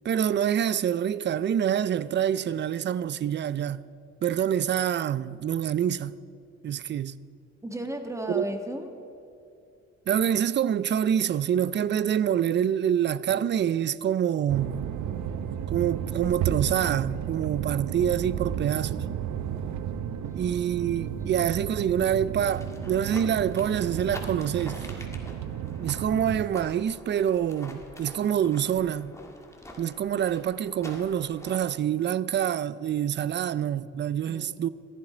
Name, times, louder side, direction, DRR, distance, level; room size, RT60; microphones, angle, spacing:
voice 1, 0.0-3.8 4.2-6.1 6.6-7.2 8.3-8.4 10.1-14.8 15.7-19.1 20.3-24.9 25.8-29.1 29.8-34.7, right 9 dB, 40° right, 0.4 m, -26 dB
voice 2, 7.6-9.0 21.0-21.4 34.2-34.5, right 1 dB, 10° right, 1.4 m, -35 dB
sound 1, 14.5-26.4, right 9 dB, 70° right, 0.7 m, -33 dB
sound 2, 22.4-31.8, left 1 dB, 10° left, 1.8 m, -45 dB
14.5 x 11.0 x 5.0 m
cardioid pair, 90°, 30 cm